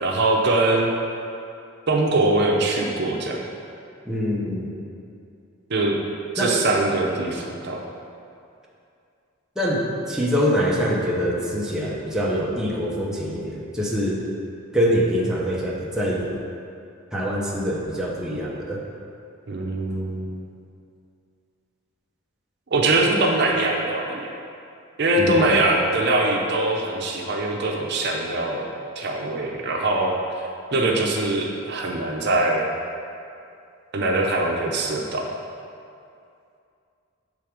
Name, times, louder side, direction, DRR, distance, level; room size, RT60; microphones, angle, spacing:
voice 1, 0.0-0.9 1.9-3.4 5.7-5.9 6.3-7.8 19.5-20.4 22.7-24.3 25.0-28.7 29.0-30.2 30.7-32.7 33.9-35.2, right 2 dB, 55° right, 0 dB, 0.7 m, -22 dB
voice 2, 4.1-4.7 6.4-6.6 9.6-14.2 14.7-16.3 17.1-18.8 25.2-25.5, equal, 5° right, -5 dB, 0.7 m, -24 dB
7.4 x 3.4 x 4.9 m, 2.5 s
head